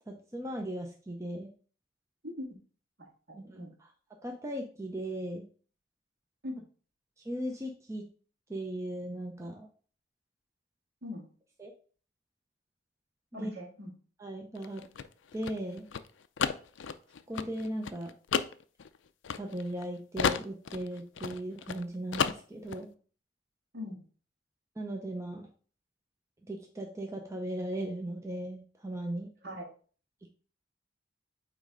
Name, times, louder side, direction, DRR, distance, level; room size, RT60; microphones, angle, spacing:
voice 1, 0.1-1.5 3.3-3.6 4.2-5.5 7.2-8.0 8.5-9.7 11.6-11.7 13.3-13.5 14.2-14.8 15.3-15.9 17.3-18.1 19.3-22.9 24.8-25.4 26.5-29.3, right 1 dB, 15° right, 1 dB, 0.6 m, -37 dB
voice 2, 3.0-3.7 6.4-6.6 11.0-11.3 13.3-13.9 23.7-24.0 29.4-29.7, left 1 dB, 60° right, 0 dB, 2.0 m, -41 dB
sound 1, 14.6-19.9 20.2-21.8 22.1-22.8, left 6 dB, 85° left, 0.4 m, -33 dB
8.6 x 3.2 x 3.8 m, 0.41 s
head